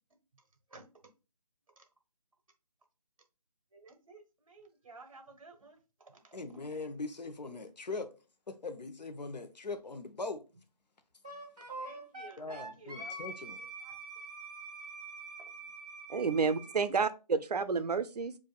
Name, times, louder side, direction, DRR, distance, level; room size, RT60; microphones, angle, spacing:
voice 1, 3.7-6.4 11.3-13.2 13.8-14.0, right 3 dB, 55° right, 1.0 m, -55 dB
voice 2, 6.3-8.1 8.5-10.5 12.4-13.6 16.4-16.5, left 3 dB, 90° left, 0.9 m, -41 dB
Wind instrument woodwind instrument, 11.2-16.9, right 2 dB, 5° right, 0.5 m, -45 dB
voice 3, 16.1-18.4, right 5 dB, 70° right, 0.6 m, -30 dB
6.9 x 2.6 x 2.3 m
figure-of-eight pair, 170°, 21 cm